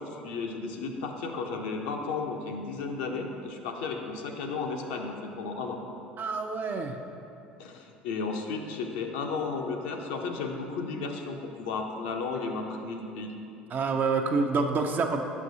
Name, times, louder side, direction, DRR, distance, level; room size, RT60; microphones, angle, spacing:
voice 1, 0.0-5.8 7.6-13.3, left 4 dB, 65° left, 3 dB, 0.6 m, -34 dB
voice 2, 6.2-7.0 13.7-15.2, right 4 dB, 35° right, 5 dB, 0.5 m, -27 dB
8.2 x 6.0 x 2.7 m, 2.7 s
figure-of-eight pair, 65°, 5 cm